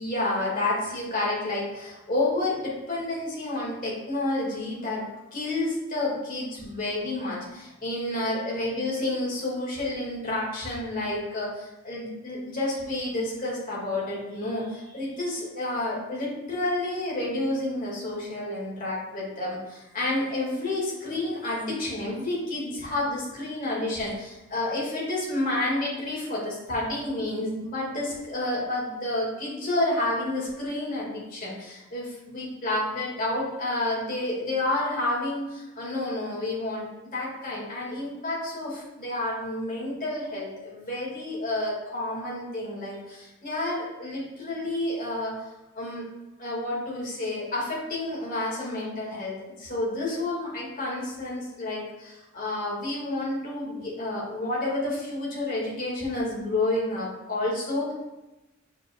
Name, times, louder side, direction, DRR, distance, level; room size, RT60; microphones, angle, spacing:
voice 1, 0.0-45.3 45.7-46.0 46.4-57.9, left 2 dB, 40° left, -5 dB, 2.2 m, -30 dB
7.2 x 5.9 x 2.4 m, 1.0 s
head